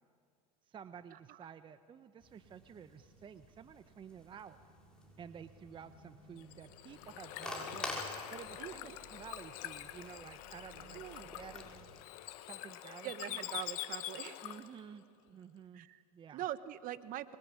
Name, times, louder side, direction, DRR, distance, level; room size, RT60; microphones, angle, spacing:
voice 1, 0.7-4.6 5.2-8.0 8.3-11.9 12.4-13.6 14.4-15.9 16.1-16.4, right 7 dB, 25° right, 11 dB, 0.9 m, -52 dB
sound 1, 2.2-12.0, left 1 dB, 5° left, 6.2 m, -50 dB
Bird / Water, 6.4-14.8, left 15 dB, 65° left, 1.5 m, -45 dB
voice 2, 8.6-9.0 10.9-11.3 13.0-14.4 15.7-16.0 16.3-17.4, right 13 dB, 45° right, 14 dB, 1.3 m, -43 dB
26.0 x 22.0 x 9.8 m, 2.2 s
hypercardioid pair, 110°, 20 cm